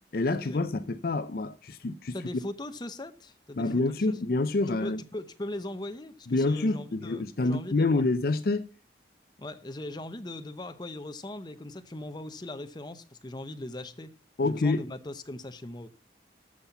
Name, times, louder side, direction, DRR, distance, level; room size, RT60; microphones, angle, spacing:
voice 1, 0.1-2.2 3.6-5.0 6.3-8.7 14.4-14.8, left 2 dB, 55° left, 0.5 m, -27 dB
voice 2, 2.1-3.7 4.1-4.2 4.7-8.0 9.4-14.1 14.4-15.9, left 1 dB, 25° left, 0.8 m, -39 dB
14.0 x 5.7 x 5.8 m
head